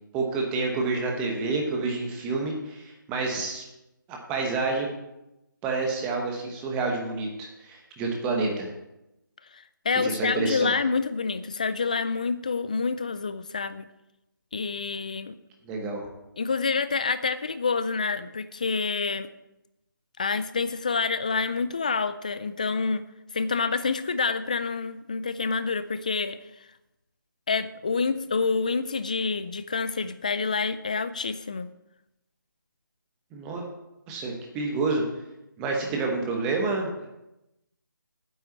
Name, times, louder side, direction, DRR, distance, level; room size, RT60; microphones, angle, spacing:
voice 1, 0.1-3.6 4.1-4.9 5.6-8.7 9.9-10.7 15.6-16.1 33.3-33.6 34.1-35.0 35.6-37.1, right 3 dB, 10° right, 1 dB, 1.1 m, -28 dB
voice 2, 9.5-13.8 14.5-15.4 16.4-19.3 20.2-23.0 23.3-26.4 27.5-31.7, left 4 dB, 20° left, 13 dB, 0.3 m, -27 dB
9.2 x 5.9 x 8.1 m, 0.92 s
figure-of-eight pair, 170°, 11 cm